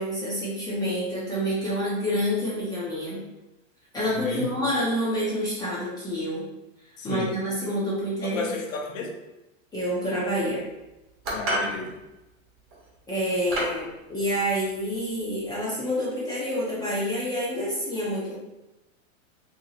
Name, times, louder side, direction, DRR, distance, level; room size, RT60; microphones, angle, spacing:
voice 1, 0.0-3.2 3.9-6.5 7.0-8.5 9.7-10.6 13.1-18.3, equal, 10° left, -8 dB, 0.5 m, -28 dB
voice 2, 4.1-4.5 7.0-7.4 8.2-9.1 11.3-12.0, left 4 dB, 80° left, 2 dB, 0.8 m, -32 dB
sound 1, 11.2-11.8 12.7-12.9 13.5-13.8, right 1 dB, 35° right, 1.1 m, -28 dB
3.0 x 2.8 x 2.8 m, 0.99 s
supercardioid pair, 145°, 39 cm